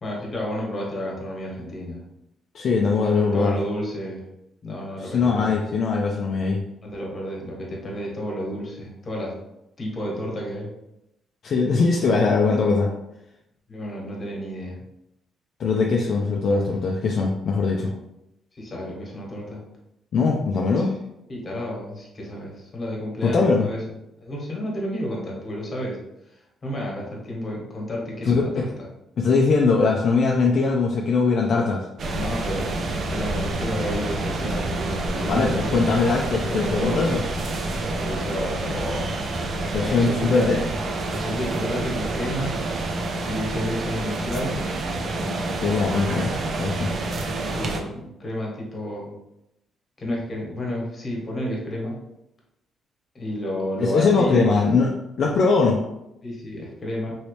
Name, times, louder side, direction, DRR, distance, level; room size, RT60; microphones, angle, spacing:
voice 1, 0.0-2.0 3.3-4.3 4.6-5.6 6.8-9.3 9.8-10.7 13.7-14.8 17.7-17.9 18.5-19.6 20.8-20.9 21.3-23.8 24.2-26.0 26.6-28.7 32.1-35.7 36.5-37.2 37.8-39.1 39.8-40.6 41.1-42.6 43.2-44.6 47.4-49.1 50.0-51.9 53.1-54.7 56.2-57.2, equal, 35° left, -2 dB, 1.3 m, -31 dB
voice 2, 2.5-3.6 5.0-6.6 11.4-12.9 15.6-17.9 20.1-20.9 23.2-23.7 28.3-28.6 29.2-31.9 35.3-37.2 39.7-40.6 45.2-46.9 53.8-54.9 55.2-55.8, left 4 dB, 60° left, -1 dB, 0.4 m, -21 dB
sound 1, 32.0-47.8, right 2 dB, 55° right, 0.5 m, -28 dB
3.1 x 2.8 x 3.1 m, 0.86 s
cardioid pair, 90°, 0 cm